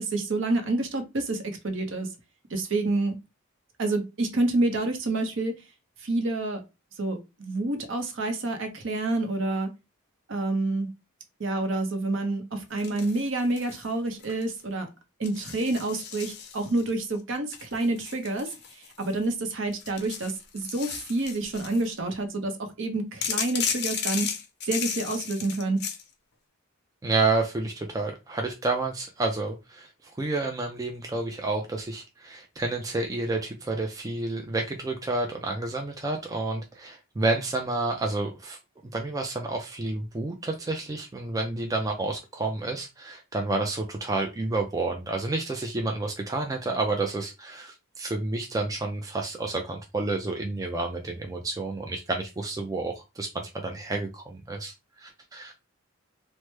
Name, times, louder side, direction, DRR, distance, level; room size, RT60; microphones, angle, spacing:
voice 1, 0.0-2.1 2.5-3.1 3.8-5.5 6.0-6.6 7.0-9.7 10.3-10.9 11.4-14.9 15.2-18.5 18.7-24.3 24.7-25.8, right 2 dB, 60° right, 6 dB, 0.7 m, -28 dB
sound 1, 12.8-13.9 14.2-14.6 15.2-16.9 17.5-19.3 19.7-21.9 23.2-26.0, left 7 dB, 50° left, 0.5 m, -34 dB
voice 2, 27.0-38.6 38.9-54.7 55.0-55.5, right 2 dB, 15° right, 2 dB, 0.3 m, -30 dB
3.1 x 2.1 x 3.2 m, 0.25 s
head